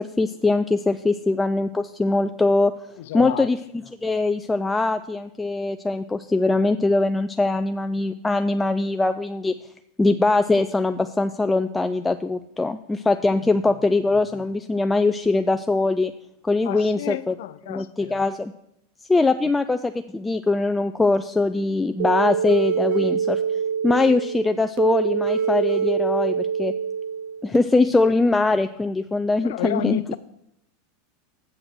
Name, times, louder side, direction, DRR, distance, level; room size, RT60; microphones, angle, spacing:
voice 1, 0.0-2.7 3.1-3.6 4.0-9.5 10.0-16.1 16.4-17.3 17.7-18.5 19.1-23.4 23.8-26.7 27.4-30.0, left 3 dB, 10° left, 0.3 m, -22 dB
voice 2, 3.0-3.5 13.4-13.5 16.6-18.2 29.4-30.2, left 13 dB, 75° left, 0.5 m, -30 dB
sound 1, 22.0-27.6, right 7 dB, 65° right, 0.6 m, -25 dB
7.7 x 5.8 x 6.3 m
supercardioid pair, 120°, 0 cm